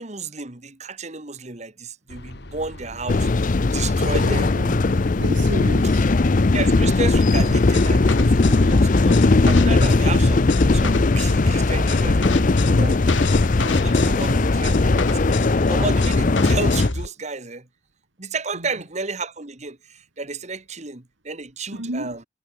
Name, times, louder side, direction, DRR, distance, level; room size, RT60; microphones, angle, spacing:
voice 1, 0.0-4.6 6.0-6.1 6.5-10.4 10.7-12.4 12.6-13.0 13.6-15.3 15.7-17.7 18.2-22.2, right 4 dB, 35° right, 1.8 m, -32 dB
sound 1, 2.1-14.8, left 1 dB, 60° left, 2.4 m, -40 dB
sound 2, 3.1-16.9, left 3 dB, 45° left, 0.6 m, -18 dB
voice 2, 4.2-6.1 21.7-22.2, right 1 dB, 75° right, 3.5 m, -32 dB
sound 3, 7.4-17.1, left 2 dB, 85° left, 4.4 m, -28 dB
head